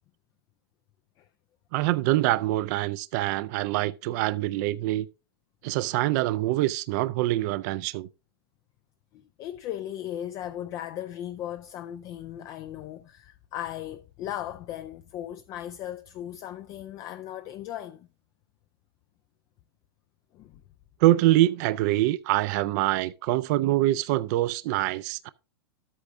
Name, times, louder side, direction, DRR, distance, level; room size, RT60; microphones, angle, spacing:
voice 1, 1.7-5.1 5.6-8.1 21.0-25.3, right 16 dB, 45° right, 0.4 m, -25 dB
voice 2, 9.1-18.1 20.3-20.6, left 11 dB, 30° left, 0.3 m, -37 dB
11.5 x 8.3 x 2.5 m
supercardioid pair, 150°, 12 cm